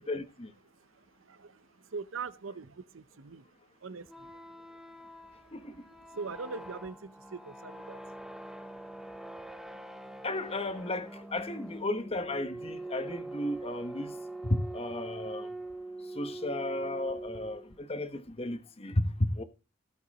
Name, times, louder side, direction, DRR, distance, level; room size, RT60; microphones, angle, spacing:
voice 1, 0.1-0.5 5.5-5.8 10.2-14.1 14.4-15.5 16.1-19.4, left 1 dB, 30° left, 1.1 m, -33 dB
voice 2, 0.6-4.6 5.3-8.0 9.6-9.8 11.1-11.4, right 4 dB, 75° right, 0.7 m, -43 dB
sound 1, 4.0-17.8, right 2 dB, ahead, 0.6 m, -43 dB
17.0 x 5.7 x 4.1 m
head